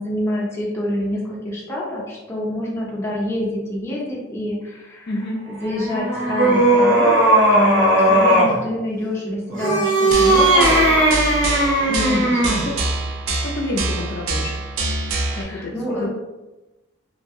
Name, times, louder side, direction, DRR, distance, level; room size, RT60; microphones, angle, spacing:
voice 1, 0.0-10.9 11.9-12.7 15.3-16.1, left 1 dB, 15° left, -5 dB, 0.6 m, -27 dB
voice 2, 5.1-5.4 12.7-12.8 13.3-14.5 15.4-16.1, left 1 dB, 50° left, -1 dB, 0.3 m, -28 dB
sound 1, 5.6-8.6 9.5-12.7, right 1 dB, 55° right, 0.9 m, -17 dB
sound 2, 10.1-15.4, right 3 dB, 85° right, 0.4 m, -25 dB
2.7 x 2.5 x 2.5 m, 1.1 s
head